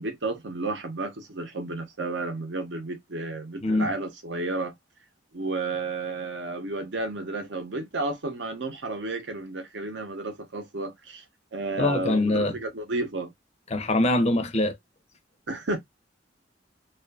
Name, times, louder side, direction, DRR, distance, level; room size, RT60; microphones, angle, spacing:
voice 1, 0.0-4.7 5.3-11.2 11.5-13.3 15.5-15.8, right 2 dB, 70° right, 0.8 m, -32 dB
voice 2, 11.8-12.5 13.7-14.8, left 2 dB, 35° left, 0.6 m, -23 dB
2.5 x 2.5 x 2.3 m
head